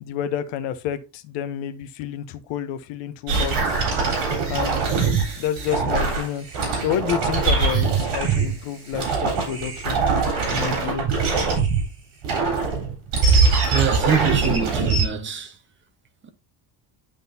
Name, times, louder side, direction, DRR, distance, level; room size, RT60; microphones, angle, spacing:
voice 1, 0.0-3.9 4.5-4.8 5.4-6.5 6.8-10.0 10.5-11.1, left 10 dB, 80° left, 1.0 m, -29 dB
sound 1, 3.3-8.6 8.9-11.9 12.2-15.1, right 4 dB, 65° right, 4.1 m, -22 dB
voice 2, 13.7-15.5, right 7 dB, 25° right, 0.9 m, -24 dB
11.5 x 3.8 x 2.7 m
cardioid pair, 145°, 43 cm